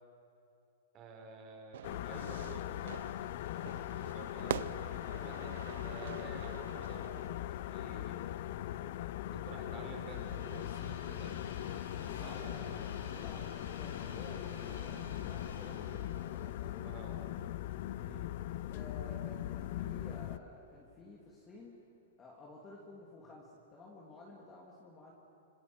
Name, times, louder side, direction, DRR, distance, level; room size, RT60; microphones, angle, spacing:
voice 1, 0.9-3.0 3.9-8.4 9.3-11.5 12.1-12.4 16.8-17.1 18.0-18.3, right 5 dB, 25° right, 3 dB, 4.1 m, -51 dB
Fire / Fireworks, 1.7-7.3, right 10 dB, 65° right, 0.6 m, -45 dB
sound 1, 1.8-20.4, left 13 dB, 50° left, 0.6 m, -40 dB
Train, 8.2-18.3 18.8-18.9 20.0-20.1, left 4 dB, 90° left, 5.0 m, -50 dB
voice 2, 12.3-16.0 16.3-17.3 18.6-21.8 22.2-25.1, left 2 dB, 15° left, -2 dB, 2.8 m, -52 dB
26.5 x 25.5 x 6.3 m, 2.9 s
hypercardioid pair, 160°, 0 cm